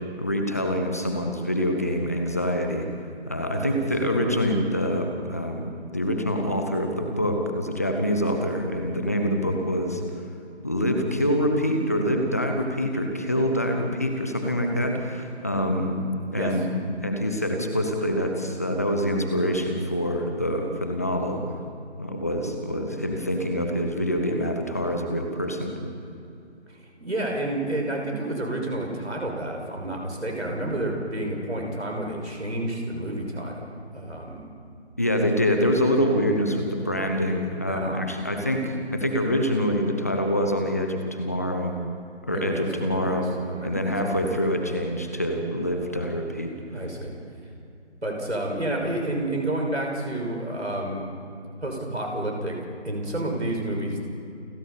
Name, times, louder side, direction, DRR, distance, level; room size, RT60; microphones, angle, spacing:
voice 1, 0.2-2.9 3.3-10.0 10.6-16.0 16.3-16.7 17.0-21.4 22.0-25.7 35.0-41.7 42.3-43.3 43.6-46.5, equal, 15° left, 4 dB, 1.0 m, -25 dB
voice 2, 3.4-3.8 16.3-16.5 26.7-33.6 33.9-34.5 37.7-38.0 42.3-44.2 46.7-47.1 48.0-51.1 51.6-52.6 52.8-54.1, right 1 dB, 75° right, 0 dB, 6.1 m, -30 dB
29.0 x 14.5 x 7.0 m, 2.6 s
figure-of-eight pair, 160°, 34 cm